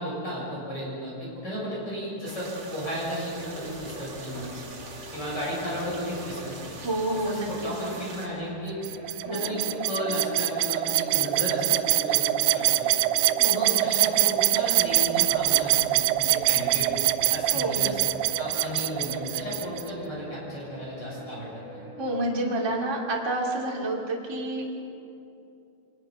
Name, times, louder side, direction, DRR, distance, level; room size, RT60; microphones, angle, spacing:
voice 1, 0.0-4.6 5.1-6.5 7.1-8.8 9.2-12.9 13.5-16.9 17.3-18.1 18.4-21.9, equal, 20° left, -5 dB, 6.6 m, -34 dB
sound 1, 2.2-8.3, right 3 dB, 50° right, 1.6 m, -43 dB
sound 2, 3.5-23.0, left 2 dB, 90° left, 7.8 m, -45 dB
voice 2, 6.8-7.5 9.2-9.6 13.4-13.8 17.5-17.9 22.0-24.7, right 1 dB, 30° right, -2 dB, 0.4 m, -29 dB
sound 3, 8.8-19.9, right 16 dB, 80° right, 2.7 m, -24 dB
25.0 x 20.0 x 5.7 m, 2.7 s
omnidirectional pair, 5.7 m